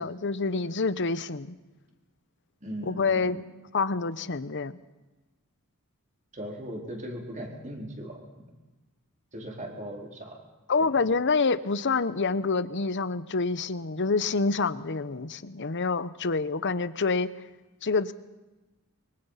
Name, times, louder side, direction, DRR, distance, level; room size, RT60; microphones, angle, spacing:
voice 1, 0.0-1.6 2.8-3.4 3.7-4.8 10.7-17.3 17.8-18.1, left 4 dB, 55° left, 14 dB, 0.9 m, -27 dB
voice 2, 2.6-3.4 6.3-8.3 9.3-10.4 10.8-10.9, equal, 35° right, 1 dB, 4.4 m, -38 dB
24.0 x 24.0 x 5.8 m, 1.1 s
head